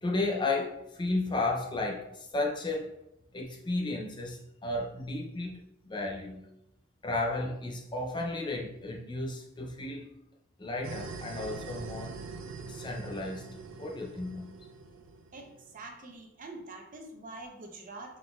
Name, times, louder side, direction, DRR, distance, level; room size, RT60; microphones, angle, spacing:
voice 1, 0.0-2.9 3.3-5.6 5.9-6.4 7.0-10.1 10.6-12.1 12.7-13.5 13.7-14.6, left 2 dB, 20° left, 0 dB, 0.5 m, -33 dB
sound 1, 10.8-15.7, right 4 dB, 65° right, 0.4 m, -43 dB
voice 2, 15.3-18.2, right 2 dB, 40° right, 2 dB, 0.8 m, -45 dB
5.6 x 3.9 x 2.4 m, 0.87 s
head